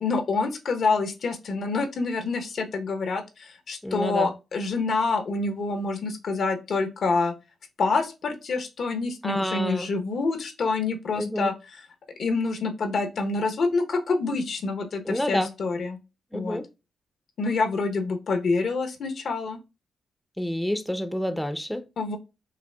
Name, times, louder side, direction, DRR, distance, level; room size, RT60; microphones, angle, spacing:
voice 1, 0.0-7.3 7.8-11.5 12.2-16.0 16.3-16.6 17.4-19.6 22.0-22.2, left 3 dB, 65° left, 0.8 m, -27 dB
voice 2, 3.8-4.3 9.2-9.9 11.2-11.5 15.1-15.5 16.3-16.7 20.4-21.8, equal, 5° left, 0.5 m, -28 dB
5.6 x 2.0 x 2.2 m
supercardioid pair, 55°, 0 cm